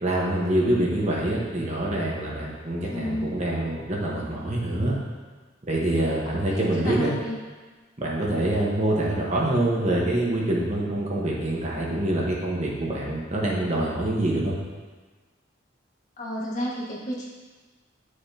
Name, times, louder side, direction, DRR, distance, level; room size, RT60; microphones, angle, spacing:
voice 1, 0.0-4.9 5.7-7.1 8.0-14.6, right 1 dB, 35° right, -4 dB, 1.3 m, -25 dB
voice 2, 2.9-3.3 6.3-7.4 16.2-17.3, equal, 40° left, -5 dB, 1.7 m, -32 dB
10.5 x 6.6 x 2.9 m, 1.3 s
head